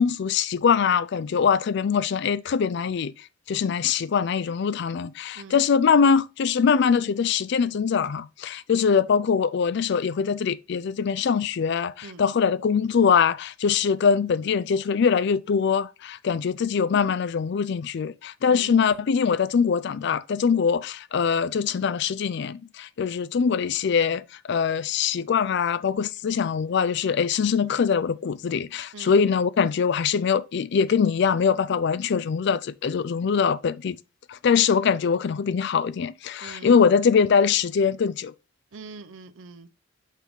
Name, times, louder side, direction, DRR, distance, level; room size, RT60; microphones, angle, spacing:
voice 1, 0.0-3.1 3.5-34.0 34.3-38.3, left 6 dB, 60° left, 0.4 m, -23 dB
voice 2, 18.5-19.1 28.9-29.3 36.4-36.8 38.7-39.7, right 4 dB, 80° right, 0.6 m, -43 dB
5.7 x 3.6 x 4.6 m
head